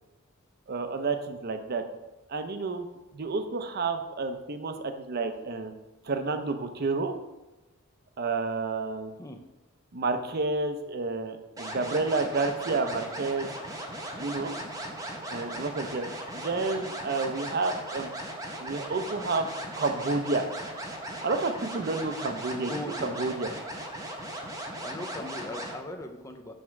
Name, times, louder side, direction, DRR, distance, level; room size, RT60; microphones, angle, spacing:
voice 1, 0.7-1.8 2.3-2.9 3.1-5.7 6.0-7.1 8.2-9.1 9.9-13.5 14.2-14.5 15.3-16.1 16.3-18.1 18.6-19.5 19.8-20.4 21.2-23.5, right 3 dB, 45° right, 8 dB, 0.6 m, -30 dB
sound 1, 11.6-25.8, right 1 dB, 15° right, 0.8 m, -38 dB
voice 2, 22.5-23.2 24.8-26.5, left 1 dB, 15° left, 5 dB, 0.5 m, -39 dB
6.4 x 3.6 x 5.8 m, 1.1 s
head